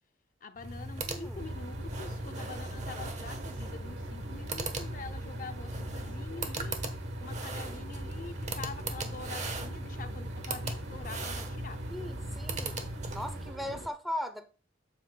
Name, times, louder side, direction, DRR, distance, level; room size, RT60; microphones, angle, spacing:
voice 1, 0.4-11.8 13.7-13.9, left 4 dB, 45° left, 0.6 m, -46 dB
sound 1, 0.6-13.6, right 2 dB, 40° right, 1.0 m, -38 dB
voice 2, 1.0-1.4 11.9-12.8 13.1-14.5, left 1 dB, ahead, 0.6 m, -38 dB
sound 2, 1.4-13.9, right 2 dB, 85° right, 0.9 m, -43 dB
8.4 x 7.6 x 2.2 m
head